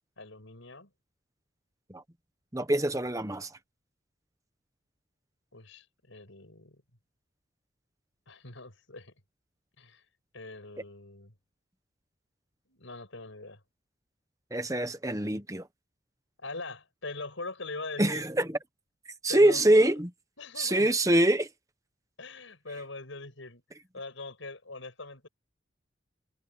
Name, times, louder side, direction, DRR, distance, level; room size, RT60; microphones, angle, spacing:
voice 1, 0.2-0.9 5.5-6.8 8.3-9.1 9.8-10.0 10.3-11.3 12.7-13.6 16.4-18.2 19.3-19.9 20.4-20.9 22.2-25.3, left 3 dB, 80° left, 6.0 m, -42 dB
voice 2, 2.5-3.5 14.5-15.7 18.0-18.6 19.2-20.1 20.6-21.5, right 1 dB, 15° right, 1.2 m, -24 dB
head